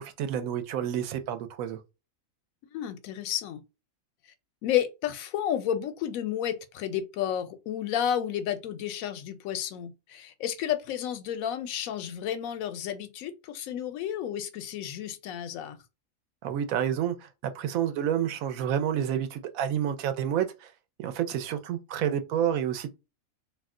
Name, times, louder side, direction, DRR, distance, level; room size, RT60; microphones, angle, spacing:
voice 1, 0.0-1.8 16.4-20.7 21.0-22.9, right 9 dB, 90° right, 1.0 m, -29 dB
voice 2, 2.7-3.6 4.6-15.8, left 10 dB, 85° left, 1.0 m, -31 dB
2.6 x 2.1 x 3.6 m
omnidirectional pair, 1.4 m